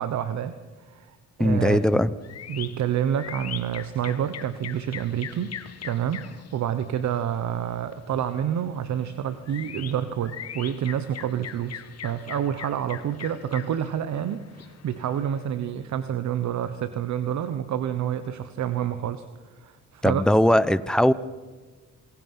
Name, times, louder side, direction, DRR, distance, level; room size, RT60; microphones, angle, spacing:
voice 1, 0.0-1.8 2.5-5.5 5.8-19.3 19.6-20.2, right 9 dB, 65° right, 11 dB, 1.2 m, -28 dB
voice 2, 1.4-2.1 20.0-21.1, left 1 dB, ahead, 15 dB, 0.9 m, -19 dB
sound 1, 2.2-15.5, left 9 dB, 55° left, 1.5 m, -42 dB
27.5 x 20.5 x 5.7 m, 1.3 s
cardioid pair, 90°, 30 cm